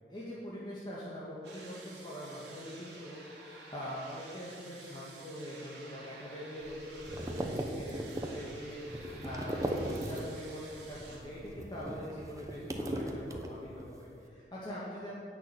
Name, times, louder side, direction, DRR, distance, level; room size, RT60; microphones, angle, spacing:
voice 1, 0.1-15.1, equal, 25° left, -7 dB, 1.8 m, -43 dB
sound 1, 1.4-11.2, right 3 dB, 70° right, 2.7 m, -52 dB
sound 2, 6.6-10.5 10.8-13.9, right 1 dB, 20° right, 0.8 m, -38 dB
10.5 x 6.4 x 8.6 m, 2.6 s
head